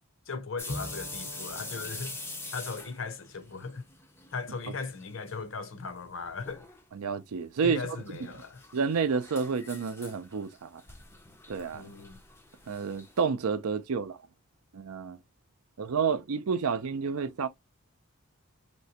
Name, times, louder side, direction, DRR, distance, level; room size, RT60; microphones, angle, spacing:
voice 1, 0.3-2.2 2.5-3.8 4.3-6.7 7.6-8.6 11.7-12.2, left 4 dB, 60° left, 0.6 m, -38 dB
sound 1, 0.6-4.4 4.7-5.4 5.7-5.8 6.4-6.8 7.8-13.2, left 3 dB, 10° left, 0.4 m, -44 dB
Bowed string instrument, 0.7-4.4, equal, 80° left, 1.1 m, -45 dB
voice 2, 6.9-7.8 8.7-10.8 11.5-11.9 12.7-14.2 14.7-15.2 15.8-17.5, right 5 dB, 80° right, 0.5 m, -30 dB
3.2 x 2.9 x 2.8 m
head